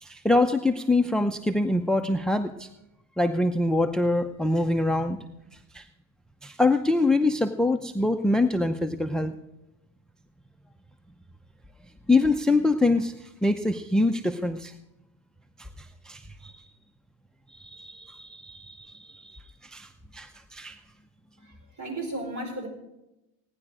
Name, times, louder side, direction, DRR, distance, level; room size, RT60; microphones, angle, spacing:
voice 1, 0.0-2.7 3.2-5.2 5.7-5.8 6.4-9.3 12.1-14.7 15.8-16.5 17.5-20.8, left 2 dB, ahead, 10 dB, 0.7 m, -25 dB
voice 2, 21.4-22.7, right 1 dB, 45° right, 4 dB, 5.0 m, -35 dB
17.5 x 10.0 x 5.0 m, 0.91 s
supercardioid pair, 90°, 41 cm